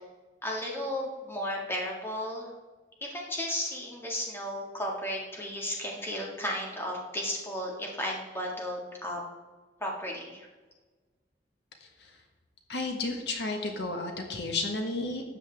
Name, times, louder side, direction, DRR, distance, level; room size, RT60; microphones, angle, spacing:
voice 1, 0.4-2.5 3.0-9.2 9.8-10.5, left 1 dB, 15° left, -2 dB, 1.8 m, -34 dB
voice 2, 12.7-15.4, left 2 dB, 70° left, 3 dB, 1.4 m, -32 dB
12.5 x 8.4 x 3.5 m, 1.3 s
head